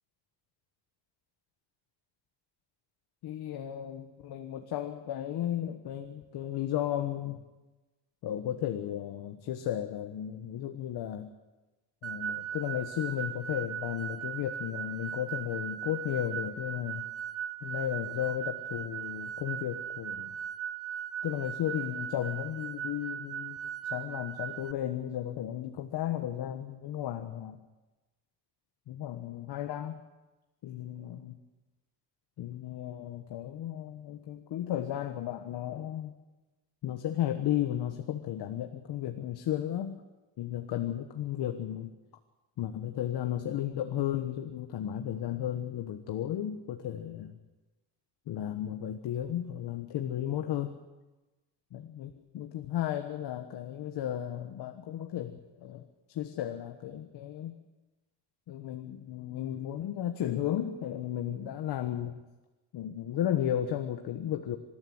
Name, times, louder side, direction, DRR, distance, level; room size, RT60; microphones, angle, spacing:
voice 1, 3.2-7.4 8.2-11.3 12.0-17.1 17.6-20.4 21.2-23.6 23.9-27.6 28.9-30.0 30.6-31.4 32.4-36.1 36.8-40.0 40.4-41.9 42.6-47.4 48.3-50.8 51.7-55.8 56.1-57.6 58.5-62.2 62.7-64.6, left 11 dB, 65° left, 6 dB, 1.5 m, -34 dB
sound 1, 12.0-24.7, right 9 dB, 35° right, 0.8 m, -38 dB
27.5 x 13.5 x 7.9 m, 1.1 s
cardioid pair, 145°, 42 cm